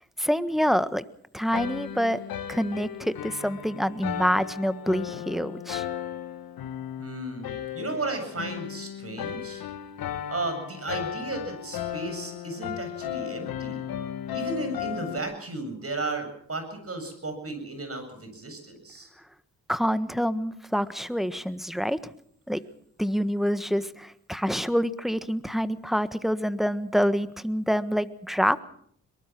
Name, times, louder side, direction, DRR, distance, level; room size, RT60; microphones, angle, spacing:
voice 1, 0.2-1.0 1.3-2.2 2.5-5.9 19.7-22.1 22.5-22.6 23.0-28.6, equal, ahead, 12 dB, 1.4 m, -26 dB
sound 1, 1.5-15.2, left 10 dB, 85° left, 1.6 m, -35 dB
voice 2, 7.0-9.6 10.3-13.8 14.3-19.1, right 2 dB, 40° right, 7 dB, 7.8 m, -34 dB
22.5 x 19.5 x 6.1 m, 0.64 s
supercardioid pair, 55°, 35 cm